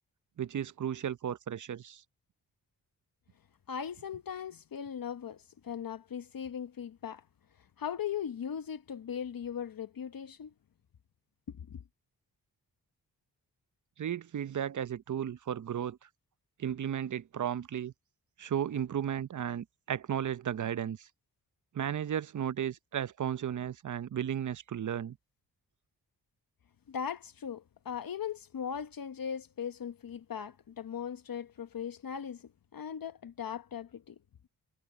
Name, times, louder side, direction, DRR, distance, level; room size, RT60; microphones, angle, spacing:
voice 1, 0.4-2.0 14.0-16.1 16.6-17.9 18.4-21.1 21.7-25.2, right 9 dB, 45° right, 0.7 m, -34 dB
voice 2, 3.7-7.2 7.8-10.5 11.5-11.8 26.9-34.2, left 8 dB, 55° left, 1.1 m, -39 dB
supercardioid pair, 50°, 40 cm